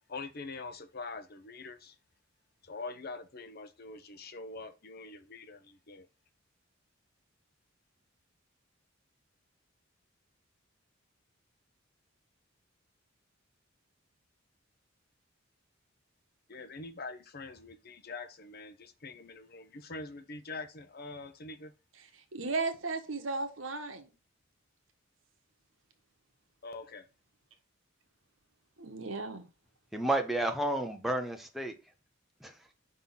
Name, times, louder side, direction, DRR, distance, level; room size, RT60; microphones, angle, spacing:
voice 1, 0.1-2.0 2.6-6.1 16.5-21.7 26.6-27.1, left 3 dB, 50° left, 0.8 m, -44 dB
voice 2, 22.3-24.1 28.8-29.5, right 3 dB, 75° right, 1.3 m, -35 dB
voice 3, 29.9-31.7 32.4-32.7, right 1 dB, ahead, 0.8 m, -31 dB
5.6 x 3.7 x 5.8 m
head